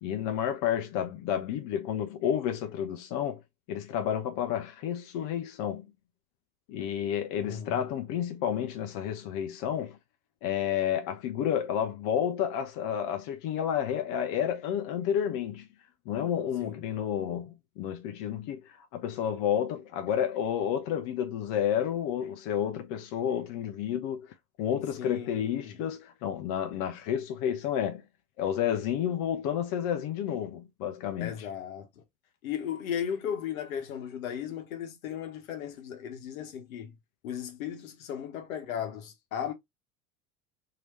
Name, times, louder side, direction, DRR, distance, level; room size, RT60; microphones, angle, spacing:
voice 1, 0.0-3.4 3.7-5.9 6.7-10.0 10.4-15.7 16.1-28.0 28.4-31.5, left 9 dB, 45° left, 0.7 m, -30 dB
voice 2, 7.4-7.8 16.6-16.8 25.0-25.8 31.2-31.9 32.4-36.9 37.2-39.5, left 9 dB, 70° left, 1.1 m, -36 dB
3.0 x 2.8 x 3.0 m
figure-of-eight pair, 75°, 43 cm